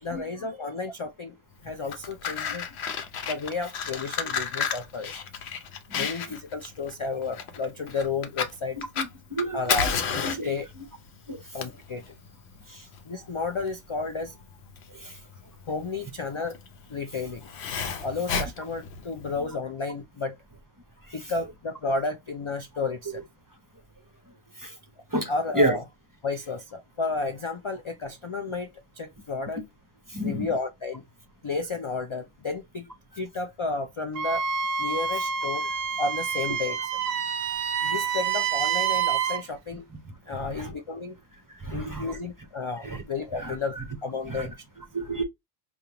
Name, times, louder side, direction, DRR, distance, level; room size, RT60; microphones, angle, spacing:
voice 1, 0.0-1.4 1.6-2.7 3.2-5.2 5.9-8.8 9.5-10.7 11.5-12.2 13.0-14.4 15.7-16.6 16.9-17.5 18.0-20.4 21.1-23.2 25.3-25.8 26.2-29.6 30.2-31.0 31.4-34.4 34.8-36.8 37.8-39.9 40.3-41.2 41.7-44.6, left 3 dB, 50° left, 0.4 m, -32 dB
Fire, 1.7-19.4, left 6 dB, 80° left, 1.0 m, -32 dB
voice 2, 8.8-10.8 11.3-11.4 15.0-15.1 21.2-21.3 23.1-23.2 24.6-24.7 25.1-25.8 29.6-29.7 30.1-30.5 40.3-40.7 41.6-42.2 42.8-43.0 43.4-43.8 44.2-44.5 44.9-45.2, right 1 dB, 25° right, 0.6 m, -31 dB
Wind instrument woodwind instrument, 34.2-39.4, right 7 dB, 70° right, 0.7 m, -27 dB
5.1 x 2.4 x 2.8 m
omnidirectional pair, 1.1 m